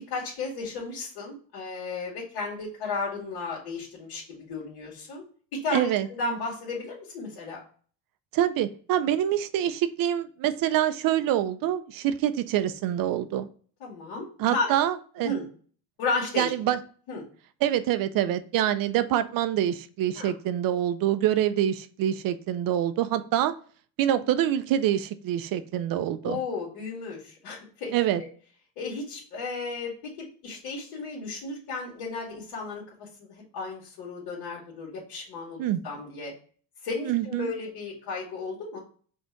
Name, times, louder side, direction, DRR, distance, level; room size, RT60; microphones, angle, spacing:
voice 1, 0.1-5.2 5.5-7.6 13.8-14.8 15.2-15.4 16.0-16.5 17.1-17.2 20.1-20.3 26.2-27.9 28.2-28.3 28.8-36.3 36.8-38.8, left 3 dB, 75° left, -6 dB, 1.8 m, -34 dB
voice 2, 5.7-6.1 8.3-13.5 14.4-15.3 16.4-16.8 17.6-23.5 24.0-26.4 27.9-28.2 35.6-35.8 37.1-37.5, right 11 dB, 55° right, 12 dB, 0.6 m, -25 dB
4.4 x 2.5 x 4.4 m, 0.44 s
cardioid pair, 110°, 41 cm